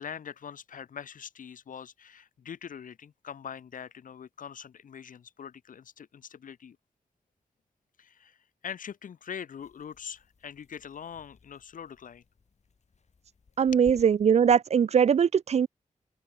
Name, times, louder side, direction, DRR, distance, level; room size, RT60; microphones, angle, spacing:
voice 1, 0.0-6.8 8.0-8.4 8.6-12.2, left 8 dB, 80° left, 1.0 m, -43 dB
sound 1, 9.6-14.6, left 5 dB, 55° left, 7.1 m, -56 dB
voice 2, 13.6-15.7, right 7 dB, 55° right, 0.4 m, -21 dB
open air
cardioid pair, 80°, 14 cm